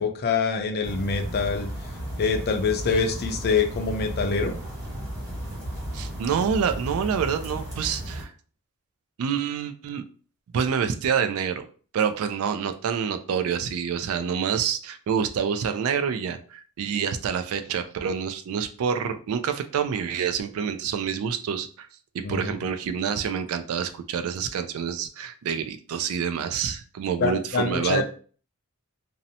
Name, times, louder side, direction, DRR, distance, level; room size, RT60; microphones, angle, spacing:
voice 1, 0.0-1.7 2.2-4.5 22.2-22.7 27.2-28.0, left 5 dB, 45° left, 5 dB, 0.4 m, -25 dB
sound 1, 0.8-8.2, equal, 15° right, 1.0 m, -34 dB
voice 2, 5.9-8.3 9.2-10.0 10.5-11.6 11.9-21.9 22.1-28.0, right 7 dB, 70° right, 9 dB, 0.3 m, -27 dB
2.6 x 2.0 x 2.6 m, 0.41 s
head